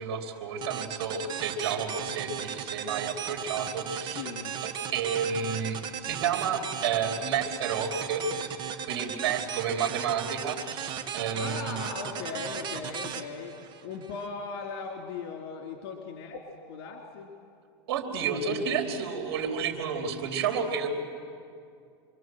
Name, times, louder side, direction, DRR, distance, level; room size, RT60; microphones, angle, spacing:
voice 1, 0.0-4.2 4.6-8.5 8.9-11.8 17.9-20.9, right 7 dB, 75° right, 4 dB, 3.4 m, -31 dB
sound 1, 0.6-14.3, right 8 dB, 35° right, 1.6 m, -36 dB
voice 2, 4.1-4.5 11.4-13.5 13.8-16.4 16.7-17.3 18.3-19.0, left 5 dB, 65° left, 1 dB, 3.2 m, -38 dB
27.0 x 22.5 x 7.7 m, 2.4 s
supercardioid pair, 135°, 13 cm